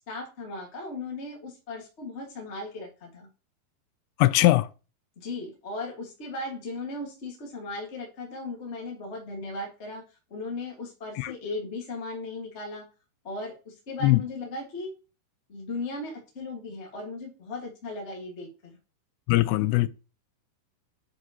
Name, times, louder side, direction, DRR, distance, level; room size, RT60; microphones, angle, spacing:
voice 1, 0.1-3.3 5.2-10.0 10.3-12.8 13.2-14.9 15.5-18.8, left 2 dB, 65° left, 0.6 m, -37 dB
voice 2, 4.2-4.7 11.2-11.3 14.0-14.2 19.3-19.9, left 18 dB, 85° left, 2.7 m, -21 dB
9.6 x 5.0 x 3.0 m
omnidirectional pair, 4.7 m